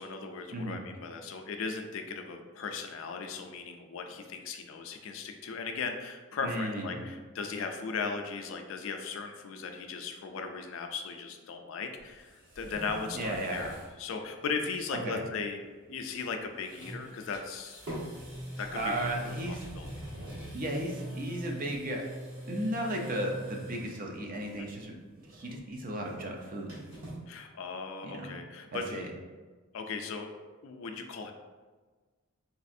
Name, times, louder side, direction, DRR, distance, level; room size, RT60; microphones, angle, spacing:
voice 1, 0.0-15.6 15.9-17.8 18.6-19.1 19.5-19.9 24.6-24.7 27.3-29.1 29.7-31.3, left 4 dB, 60° left, 5 dB, 0.3 m, -37 dB
voice 2, 6.4-7.0 13.1-13.7 15.0-15.2 18.7-19.7 20.5-22.0 22.5-24.9 25.3-26.7 28.0-28.3 28.7-29.1, right 1 dB, 40° right, 1 dB, 0.5 m, -35 dB
sound 1, 12.0-13.9 14.3-14.4 16.1-16.3 16.6-24.0 24.4-24.8 25.1-27.2, right 1 dB, 60° right, 1.2 m, -43 dB
4.0 x 2.4 x 2.5 m, 1.4 s
head